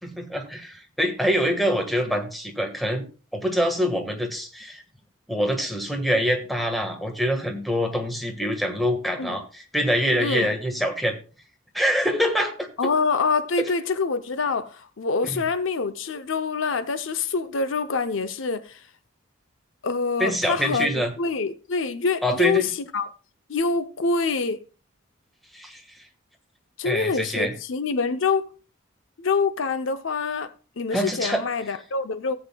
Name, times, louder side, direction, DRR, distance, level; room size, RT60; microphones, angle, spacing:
voice 1, 0.0-3.1 3.3-4.8 5.3-11.2 11.7-12.7 13.6-13.7 15.2-15.4 20.2-21.1 22.2-22.7 25.5-25.8 26.8-27.5 30.9-31.4, equal, ahead, 1.5 m, -25 dB
voice 2, 10.2-10.5 12.8-18.8 19.8-23.1 23.5-24.6 26.8-28.5 29.2-32.4, left 4 dB, 65° left, 0.7 m, -26 dB
17.5 x 7.9 x 2.3 m
head